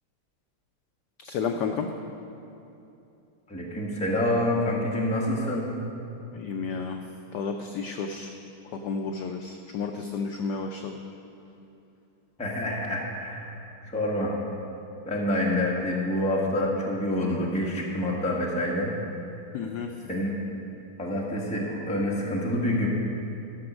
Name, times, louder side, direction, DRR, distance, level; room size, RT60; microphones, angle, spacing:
voice 1, 1.2-1.9 6.3-7.0 7.3-8.3 8.7-10.9 19.5-19.9, left 5 dB, 80° left, 4 dB, 0.9 m, -31 dB
voice 2, 3.5-5.7 12.4-13.5 13.8-14.3 15.0-18.9 20.0-20.3 21.0-22.9, left 1 dB, 5° left, -3 dB, 0.9 m, -27 dB
12.0 x 6.2 x 6.1 m, 2.8 s
omnidirectional pair, 2.3 m